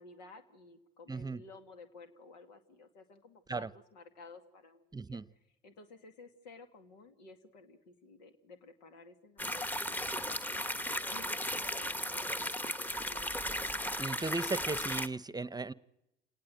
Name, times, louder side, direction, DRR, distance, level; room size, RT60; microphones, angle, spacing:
voice 1, 0.0-5.2 5.6-13.5, left 3 dB, 90° left, 6 dB, 2.2 m, -55 dB
voice 2, 1.1-1.4 3.5-3.7 4.9-5.2 14.0-15.7, right 3 dB, 20° right, 17 dB, 0.9 m, -36 dB
sound 1, 9.4-15.1, equal, 10° left, 1.2 m, -36 dB
28.0 x 18.5 x 7.8 m, 0.91 s
hypercardioid pair, 55°, 21 cm